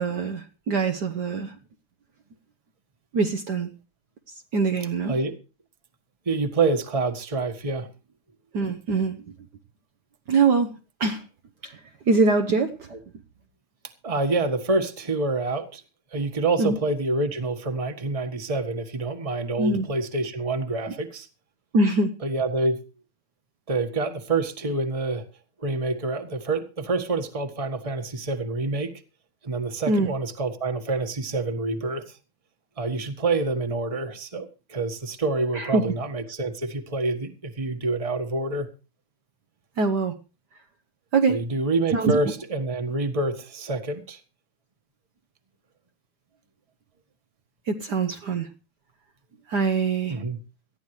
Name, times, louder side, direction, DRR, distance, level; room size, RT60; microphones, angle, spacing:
voice 1, 0.0-1.6 3.1-3.7 4.5-5.1 8.5-9.2 10.3-10.7 11.0-11.2 11.6-11.8 12.1-12.9 16.6-16.8 19.6-19.9 21.7-22.2 29.9-30.1 35.5-35.8 39.8-40.1 41.1-41.4 41.9-42.2 47.7-48.5 49.5-50.2, right 3 dB, 60° right, 6 dB, 1.4 m, -23 dB
voice 2, 6.2-7.9 12.9-13.0 14.0-15.8 16.1-21.3 22.2-22.8 23.7-25.2 25.6-28.9 29.4-32.2 32.8-38.7 41.3-44.2 50.1-50.4, right 3 dB, 20° right, 7 dB, 1.4 m, -27 dB
19.0 x 13.5 x 3.2 m, 0.32 s
omnidirectional pair, 2.3 m